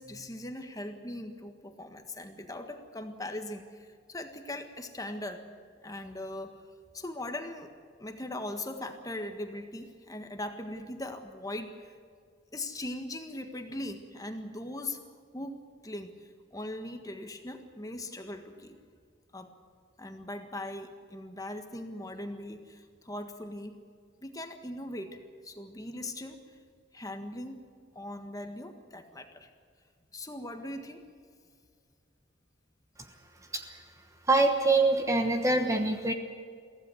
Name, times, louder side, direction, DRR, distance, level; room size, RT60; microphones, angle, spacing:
voice 1, 0.0-5.5 5.8-6.6 6.9-7.7 8.0-11.9 12.5-15.0 15.3-15.6 15.8-16.1 16.5-18.8 19.3-19.5 20.0-23.8 24.2-26.4 26.9-27.6 28.0-29.5 30.1-31.0, left 1 dB, 20° left, 6 dB, 1.6 m, -40 dB
voice 2, 34.3-36.1, right 2 dB, 15° right, 5 dB, 1.2 m, -25 dB
23.5 x 16.5 x 7.9 m, 2.1 s
head